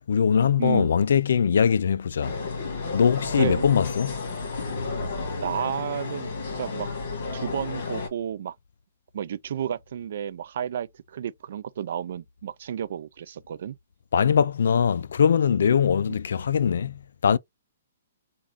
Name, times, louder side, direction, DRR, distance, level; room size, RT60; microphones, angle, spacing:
voice 1, 0.1-2.4 2.9-4.2 14.1-17.4, left 7 dB, 75° left, 0.3 m, -22 dB
voice 2, 0.6-1.0 3.4-3.6 5.4-6.3 6.5-6.9 7.3-8.5 9.1-13.7, right 9 dB, 55° right, 0.4 m, -31 dB
sound 1, 2.2-8.1, left 3 dB, 55° left, 1.8 m, -32 dB
3.6 x 2.3 x 3.5 m
hypercardioid pair, 165°, 0 cm